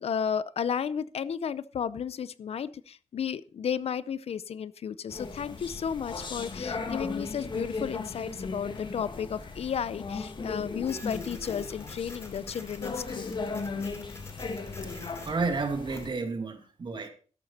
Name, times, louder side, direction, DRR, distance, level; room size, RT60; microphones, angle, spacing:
voice 1, 0.0-13.3, left 7 dB, 65° left, 0.6 m, -33 dB
sound 1, 5.1-16.1, left 4 dB, 45° left, 2.0 m, -37 dB
Printer, 10.8-16.2, left 2 dB, 25° left, 2.9 m, -49 dB
voice 2, 14.8-17.1, right 4 dB, 45° right, 2.3 m, -32 dB
13.0 x 11.0 x 4.2 m
wide cardioid pair, 140°, 11 cm